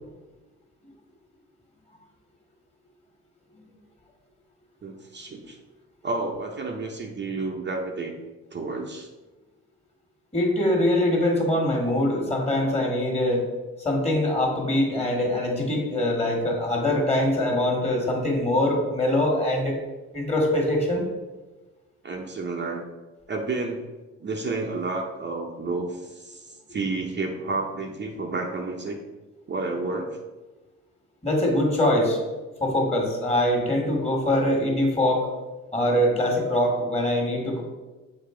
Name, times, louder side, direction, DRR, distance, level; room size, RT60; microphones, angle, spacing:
voice 1, 4.8-5.6 6.0-8.1 8.5-9.1 22.0-22.8 23.3-23.8 24.2-29.0 29.5-30.2, right 3 dB, 35° right, 1 dB, 0.7 m, -30 dB
voice 2, 10.3-13.4 13.8-19.8 20.1-21.0 31.2-32.2 32.6-35.3 35.7-37.6, left 1 dB, 20° left, 1 dB, 1.7 m, -23 dB
6.8 x 3.8 x 3.8 m, 1.2 s
cardioid pair, 90°, 30 cm